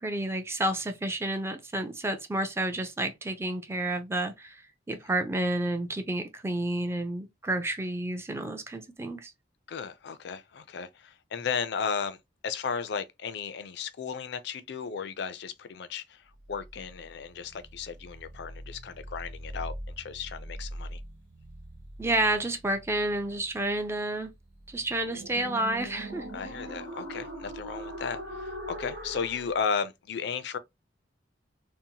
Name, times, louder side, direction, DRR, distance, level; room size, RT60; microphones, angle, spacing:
voice 1, 0.0-9.3 22.0-24.3 24.7-26.3, right 1 dB, 15° right, 0.4 m, -30 dB
voice 2, 9.7-12.2 12.4-21.0 26.3-30.6, left 6 dB, 60° left, 0.4 m, -35 dB
sound 1, 16.3-29.6, right 1 dB, 80° right, 1.0 m, -42 dB
2.7 x 2.1 x 2.7 m
head